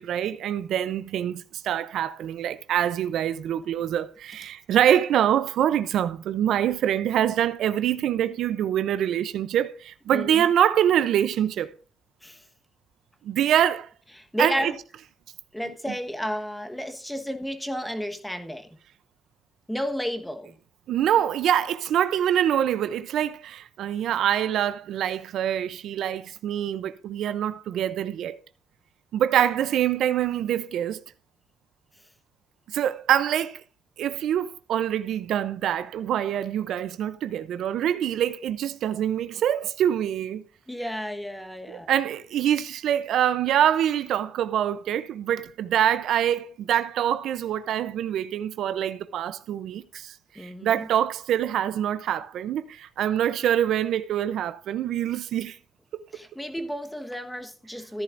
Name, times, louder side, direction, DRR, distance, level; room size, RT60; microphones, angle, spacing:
voice 1, 0.0-11.7 13.2-13.9 14.4-14.7 20.9-28.4 29.1-31.0 32.7-33.6 34.0-40.4 41.7-55.6 55.9-56.0, right 10 dB, 75° right, 0.6 m, -25 dB
voice 2, 10.1-10.4 12.2-12.4 14.2-14.7 15.5-18.8 19.7-20.5 40.7-41.9 50.3-50.9 56.1-58.0, equal, 5° left, 1.3 m, -32 dB
14.5 x 10.0 x 2.6 m
cardioid pair, 90°, 0 cm